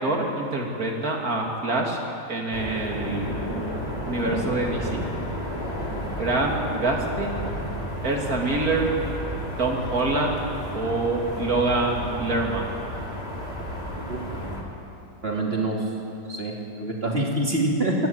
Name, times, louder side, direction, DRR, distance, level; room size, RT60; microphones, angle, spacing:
voice 1, 0.0-2.0 2.3-3.4 4.0-5.0 5.9-7.4 8.0-8.9 9.6-10.4 10.7-12.7, right 2 dB, 45° right, 0 dB, 3.2 m, -26 dB
sound 1, 2.5-14.6, equal, 20° left, 3.2 m, -32 dB
voice 2, 14.1-14.6 15.2-15.8 16.3-17.9, right 2 dB, 30° right, -2 dB, 3.3 m, -26 dB
23.5 x 14.5 x 9.0 m, 2.8 s
omnidirectional pair, 2.1 m